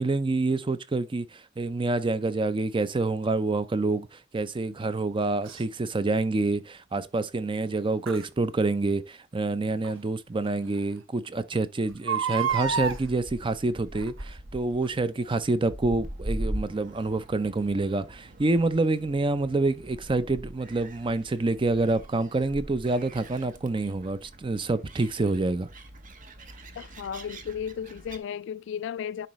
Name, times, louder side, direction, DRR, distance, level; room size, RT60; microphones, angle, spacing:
voice 1, 0.0-4.1 4.3-25.7, right 2 dB, 25° right, 0.5 m, -27 dB
Crying sobbing, 5.4-5.6 8.1-8.2 9.8-9.9 10.5-10.6 10.8-10.9 11.9-13.0 13.9-14.3 14.8-14.9, right 6 dB, 75° right, 0.7 m, -28 dB
Gull seagull, 12.5-28.2, right 1 dB, 45° right, 0.9 m, -41 dB
voice 2, 26.8-29.3, left 8 dB, 65° left, 0.3 m, -34 dB
10.0 x 4.0 x 3.1 m
head